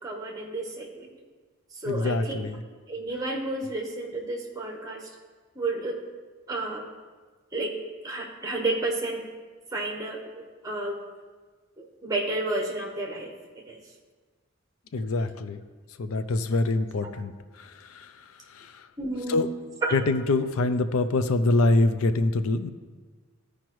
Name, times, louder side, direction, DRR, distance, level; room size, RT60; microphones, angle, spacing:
voice 1, 0.0-1.1 1.8-2.4 2.9-5.0 5.5-6.0 6.5-6.9 7.5-7.8 8.0-9.2 9.7-10.2 10.6-11.0 11.8-13.3 13.7-13.8 19.0-19.5 19.8-19.9, right 2 dB, 15° right, 0 dB, 1.1 m, -31 dB
voice 2, 1.8-2.6 14.9-15.6 16.0-18.9 19.3-19.5 19.9-22.7, left 2 dB, 85° left, 11 dB, 0.5 m, -25 dB
15.0 x 5.0 x 3.1 m, 1.4 s
head